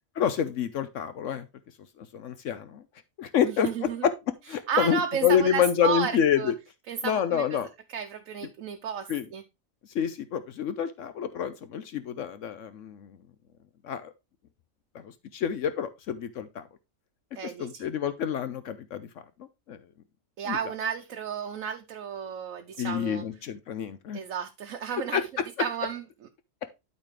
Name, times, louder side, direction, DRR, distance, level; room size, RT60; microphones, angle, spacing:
voice 1, 0.2-1.5 2.0-2.8 3.2-3.7 4.0-4.1 4.5-6.5 7.0-7.7 9.1-9.3 9.9-13.1 13.8-14.1 15.0-16.7 17.6-19.1 19.7-19.8 20.5-20.6 22.8-24.2 25.1-25.2, left 8 dB, 70° left, 1.0 m, -27 dB
voice 2, 3.4-4.1 4.5-6.5 6.9-7.6 7.9-9.4 17.3-17.9 20.4-23.2 24.1-26.0, right 7 dB, 85° right, 1.2 m, -33 dB
12.0 x 4.2 x 3.2 m
omnidirectional pair, 1.4 m